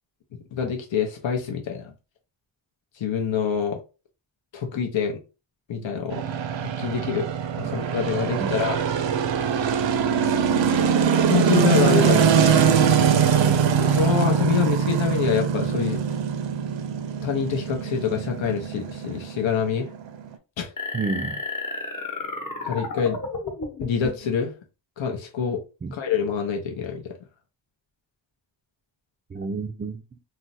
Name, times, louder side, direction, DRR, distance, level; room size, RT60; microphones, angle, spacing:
voice 1, 0.3-1.9 2.9-3.8 4.5-5.2 5.7-6.3 6.8-7.3 7.6-8.8 11.3-12.3 13.9-16.0 17.2-19.9 20.6-20.7 22.6-23.2 23.8-24.5 25.0-25.6 25.9-27.2, left 7 dB, 80° left, 0.7 m, -26 dB
sound 1, 6.1-20.3, right 7 dB, 75° right, 0.5 m, -22 dB
voice 2, 13.4-14.2 20.9-21.4 25.8-25.9 29.3-30.0, right 3 dB, 25° right, 0.3 m, -31 dB
sound 2, 20.8-24.3, left 3 dB, 45° left, 1.0 m, -32 dB
2.4 x 2.1 x 3.9 m
cardioid pair, 55°, 45 cm